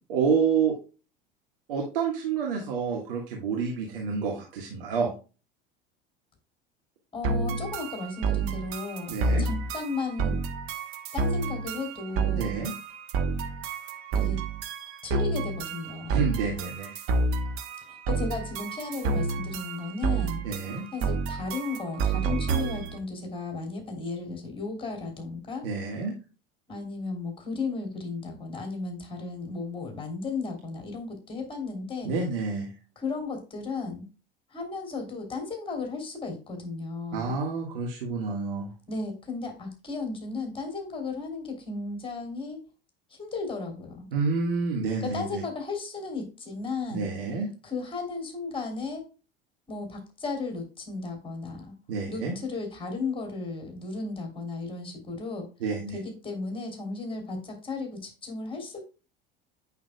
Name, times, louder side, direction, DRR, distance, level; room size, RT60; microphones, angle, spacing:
voice 1, 0.1-0.7 1.7-5.1 9.1-9.4 12.4-12.7 16.1-17.0 20.4-20.8 25.6-26.1 32.0-32.7 37.1-38.7 44.1-45.4 46.9-47.5 51.9-52.4 55.6-56.0, right 5 dB, 70° right, -1 dB, 1.6 m, -28 dB
voice 2, 7.1-10.4 11.1-12.5 14.1-14.4 15.0-16.3 17.9-20.4 20.9-25.7 26.7-32.1 32.9-34.1 34.5-37.3 38.9-42.6 43.1-44.1 45.1-47.1 47.6-49.0 49.7-51.7 52.1-55.5 55.9-58.8, left 3 dB, 20° left, 3 dB, 3.4 m, -35 dB
sound 1, 7.2-23.0, right 4 dB, 50° right, 1.1 m, -29 dB
8.5 x 5.7 x 2.2 m, 0.33 s
figure-of-eight pair, 75°, 29 cm